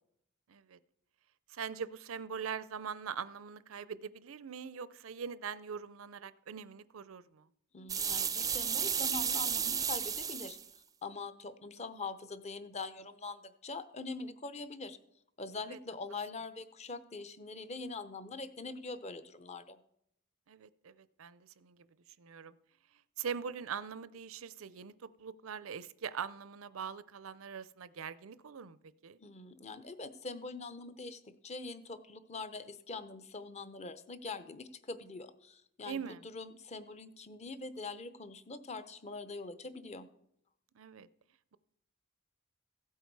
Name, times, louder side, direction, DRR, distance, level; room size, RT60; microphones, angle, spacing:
voice 1, 0.5-0.8 1.5-7.5 15.7-15.8 20.5-21.9 22.2-22.5 23.2-28.8 29.0-29.2 35.8-36.3 40.7-41.1, right 7 dB, 80° right, 0.5 m, -42 dB
voice 2, 7.7-10.6 11.0-15.0 15.4-19.8 29.2-40.1, left 3 dB, 30° left, 0.7 m, -43 dB
sound 1, 7.9-10.6, right 7 dB, 15° right, 0.5 m, -33 dB
15.5 x 8.3 x 4.7 m
head